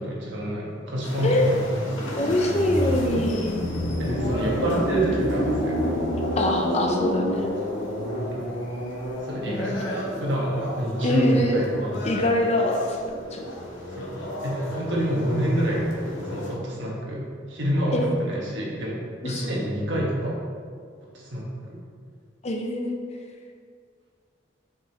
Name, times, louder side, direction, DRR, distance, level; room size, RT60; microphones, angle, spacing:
voice 1, 0.0-2.2 4.0-5.8 8.3-8.5 9.3-9.8 10.2-12.1 13.9-14.1 14.4-15.8 16.3-20.4 21.1-21.8, right 1 dB, 65° right, -3 dB, 1.3 m, -27 dB
sound 1, 1.0-16.5, equal, 85° left, 1.1 m, -30 dB
voice 2, 2.2-3.6 6.4-7.5 9.5-10.0 11.0-11.6 12.0-13.4 17.9-18.1 19.2-19.5 22.4-23.0, left 1 dB, 35° left, 2 dB, 0.6 m, -24 dB
6.2 x 5.2 x 3.0 m, 2.1 s
head